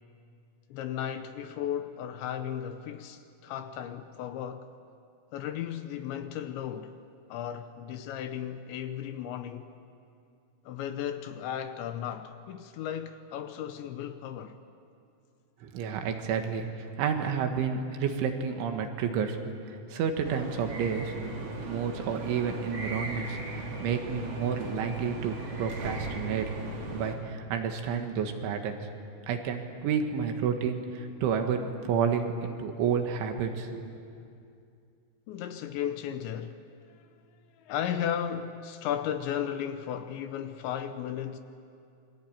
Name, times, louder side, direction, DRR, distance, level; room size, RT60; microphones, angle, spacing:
voice 1, 0.7-4.7 5.3-7.0 7.3-9.7 10.7-14.6 35.3-37.1 37.5-41.4, left 9 dB, 80° left, 3.0 m, -35 dB
voice 2, 15.6-16.7 17.0-19.4 19.7-21.1 21.6-26.5 26.9-28.8 29.3-33.9, right 7 dB, 75° right, 4.0 m, -30 dB
sound 1, 20.3-27.1, right 2 dB, 35° right, 3.2 m, -37 dB
28.0 x 23.0 x 8.9 m
omnidirectional pair, 5.7 m